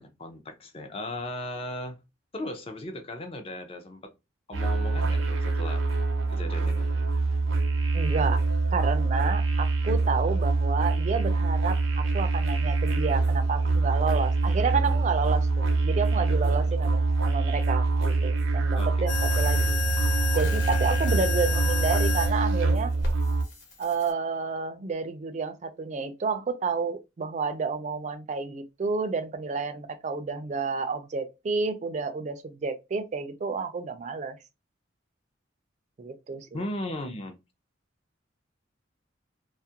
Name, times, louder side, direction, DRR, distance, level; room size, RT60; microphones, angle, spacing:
voice 1, 0.0-2.0 2.3-4.1 4.5-5.9 6.3-6.9 16.6-16.7 18.8-18.9 36.5-37.4, left 1 dB, 30° left, 0.4 m, -37 dB
sound 1, 4.5-23.4, right 3 dB, 90° right, 0.5 m, -25 dB
voice 2, 7.9-8.4 8.7-19.8 20.4-22.9 23.8-34.4 36.0-36.6, right 4 dB, 35° right, 0.3 m, -30 dB
sound 2, 19.1-22.3 23.0-24.1, left 4 dB, 60° left, 1.0 m, -31 dB
2.3 x 2.1 x 2.7 m
head